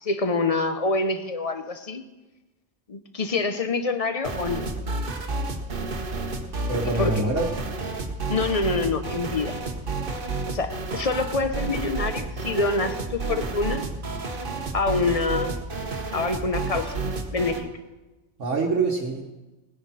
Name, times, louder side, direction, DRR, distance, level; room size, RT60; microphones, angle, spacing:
voice 1, 0.0-2.0 2.9-4.7 7.0-7.2 8.3-9.5 10.5-13.8 14.7-15.5 16.1-16.9 17.3-17.7, left 3 dB, 35° left, 8 dB, 0.8 m, -26 dB
sound 1, 4.2-17.7, right 3 dB, 50° right, 1.3 m, -31 dB
voice 2, 6.7-7.4 18.4-19.3, right 3 dB, 75° right, -1 dB, 1.6 m, -25 dB
17.5 x 10.0 x 4.1 m, 1.1 s
omnidirectional pair, 1.2 m